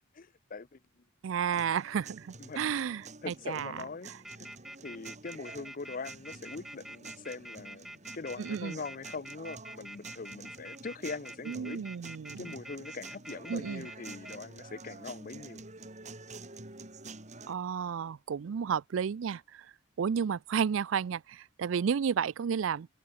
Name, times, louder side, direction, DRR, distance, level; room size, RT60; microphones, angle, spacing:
voice 1, 0.1-0.8 2.4-2.9 3.2-4.1 4.4-4.5 4.8-11.8 12.4-15.6, left 4 dB, 45° left, 0.6 m, -42 dB
voice 2, 1.2-4.2 8.4-8.8 11.5-12.5 13.5-13.9 17.5-19.7 20.0-22.9, right 7 dB, 75° right, 0.4 m, -32 dB
sound 1, 1.5-17.5, right 3 dB, 35° right, 3.4 m, -49 dB
sound 2, 4.2-14.4, equal, ahead, 1.5 m, -46 dB
head